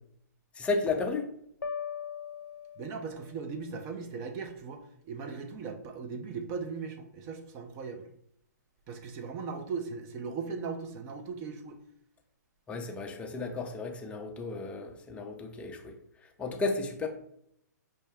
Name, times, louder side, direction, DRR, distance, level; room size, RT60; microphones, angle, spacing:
voice 1, 0.6-1.3 12.7-16.0 16.4-17.1, left 3 dB, 10° left, 2 dB, 0.5 m, -33 dB
sound 1, 1.6-3.5, left 7 dB, 80° left, 0.5 m, -40 dB
voice 2, 2.8-8.1 8.9-11.8, right 5 dB, 30° right, 4 dB, 0.6 m, -38 dB
5.4 x 2.2 x 3.4 m, 0.71 s
hypercardioid pair, 125°, 10 cm